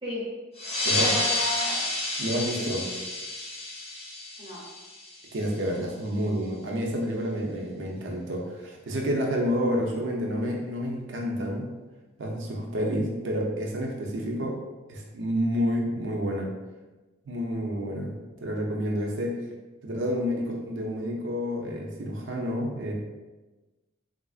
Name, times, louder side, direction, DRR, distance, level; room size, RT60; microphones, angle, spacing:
voice 1, 0.0-0.3 0.8-1.9 2.5-3.1 4.4-4.7, left 1 dB, 25° right, -7 dB, 0.7 m, -34 dB
sound 1, 0.6-5.6, left 2 dB, 30° left, 0.7 m, -30 dB
voice 2, 2.2-2.8 5.3-11.7 12.2-14.5 14.9-16.5 17.3-19.3 19.8-22.9, equal, 60° right, 0 dB, 0.6 m, -29 dB
3.5 x 2.5 x 2.3 m, 1.2 s
head